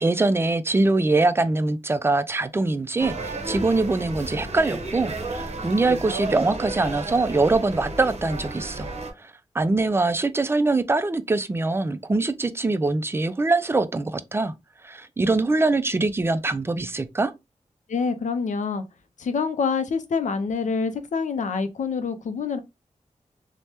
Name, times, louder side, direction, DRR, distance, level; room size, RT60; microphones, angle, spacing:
voice 1, 0.0-8.9 9.2-14.5 14.8-17.3, right 3 dB, 20° right, 0.3 m, -23 dB
sound 1, 3.0-9.1, right 2 dB, 55° right, 0.7 m, -32 dB
voice 2, 17.9-18.8 19.2-22.6, left 5 dB, 75° left, 0.5 m, -26 dB
3.3 x 2.1 x 2.8 m
wide cardioid pair, 90°, 13 cm